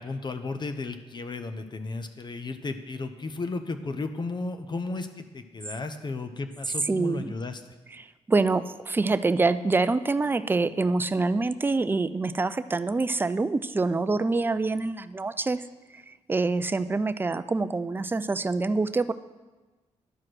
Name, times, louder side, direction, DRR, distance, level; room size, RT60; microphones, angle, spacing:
voice 1, 0.0-7.6, left 3 dB, 40° left, 8 dB, 0.7 m, -34 dB
voice 2, 6.9-7.3 7.9-15.6 16.3-19.1, right 3 dB, 15° right, 12 dB, 0.4 m, -26 dB
11.0 x 4.8 x 6.1 m, 1.2 s
cardioid pair, 80°, 12 cm